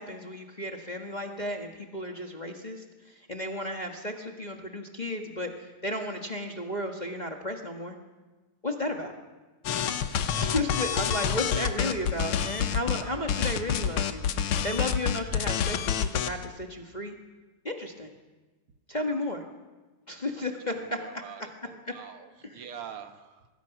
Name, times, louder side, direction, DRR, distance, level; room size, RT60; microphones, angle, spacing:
voice 1, 0.0-8.0 8.6-9.1 10.3-17.2 17.6-18.1 18.9-19.4 20.1-21.1 21.4-21.5 22.4-22.6, left 1 dB, 35° left, 2 dB, 0.6 m, -33 dB
sound 1, 9.6-13.0 13.3-16.4, left 8 dB, 90° left, 1.1 m, -28 dB
voice 2, 20.7-23.5, right 8 dB, 55° right, 8 dB, 1.7 m, -45 dB
25.5 x 21.5 x 6.1 m, 1.2 s
omnidirectional pair, 3.8 m